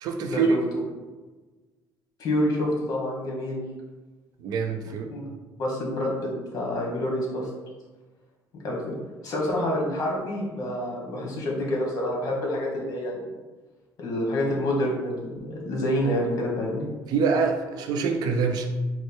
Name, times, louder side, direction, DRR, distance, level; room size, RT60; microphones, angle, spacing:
voice 1, 0.0-0.6 4.4-5.1 17.1-18.7, right 5 dB, 70° right, 4 dB, 0.6 m, -25 dB
voice 2, 2.2-3.6 5.0-5.2 5.6-7.5 8.6-8.9 9.2-13.2 14.0-16.9, left 1 dB, 55° left, -2 dB, 1.4 m, -27 dB
4.6 x 2.1 x 4.4 m, 1.2 s
cardioid pair, 110°, 7 cm